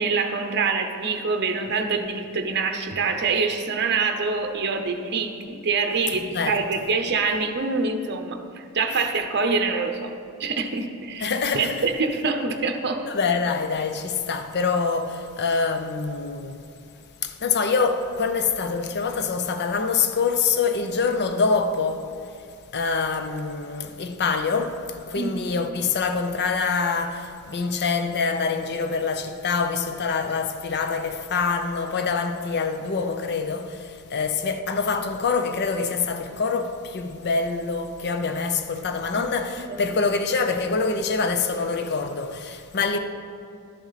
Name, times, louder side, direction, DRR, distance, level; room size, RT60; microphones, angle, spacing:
voice 1, 0.0-10.1 10.4-13.0 25.2-25.3 39.1-39.2 39.6-39.8, right 4 dB, 50° right, 0.8 m, -25 dB
voice 2, 6.2-6.6 11.2-11.8 13.1-16.6 17.2-22.1 22.7-24.8 25.1-43.0, left 4 dB, 50° left, 0.6 m, -25 dB
12.0 x 7.2 x 4.1 m
head